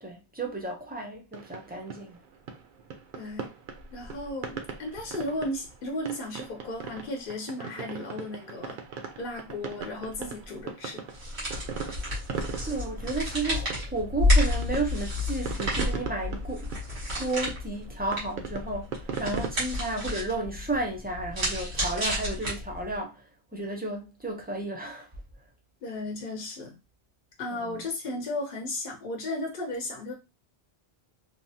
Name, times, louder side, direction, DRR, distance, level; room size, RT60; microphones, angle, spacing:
voice 1, 0.0-2.2 12.6-16.7 17.2-23.2 23.5-25.1 27.5-27.7, right 2 dB, 15° right, 0.3 m, -33 dB
sound 1, 1.3-19.5, right 6 dB, 60° right, 0.6 m, -39 dB
voice 2, 3.1-3.5 3.9-8.8 9.2-11.0 25.8-26.8 27.4-30.1, left 1 dB, 60° left, 0.8 m, -35 dB
sound 2, 11.1-23.0, left 1 dB, 90° right, 1.6 m, -30 dB
3.2 x 2.0 x 2.7 m
omnidirectional pair, 1.1 m